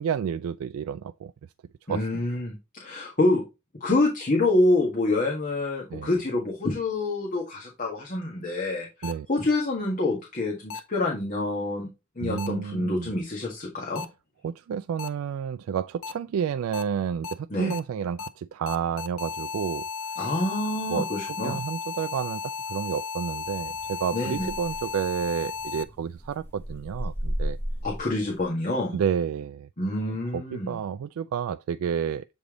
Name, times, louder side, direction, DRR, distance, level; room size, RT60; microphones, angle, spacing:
voice 1, 0.0-1.3 1.9-2.2 5.9-6.1 9.0-9.3 12.2-13.1 14.4-19.9 20.9-21.1 21.4-27.6 28.9-29.7 30.3-32.3, right 7 dB, 80° right, 0.3 m, -30 dB
voice 2, 1.9-3.4 3.8-11.9 12.1-14.0 17.5-17.7 20.2-21.6 24.1-24.5 27.8-29.0 29.8-30.7, left 2 dB, 40° left, 1.6 m, -27 dB
sound 1, 9.0-9.1 10.7-10.8 12.4-12.5 13.9-14.0 15.0-15.1 16.0-16.1 16.7-16.8 17.2-17.3 17.7-17.8 18.2-18.3 18.7-25.8, left 5 dB, 85° left, 0.7 m, -34 dB
sound 2, 23.4-28.5, equal, 10° left, 1.1 m, -36 dB
8.1 x 3.4 x 3.7 m
head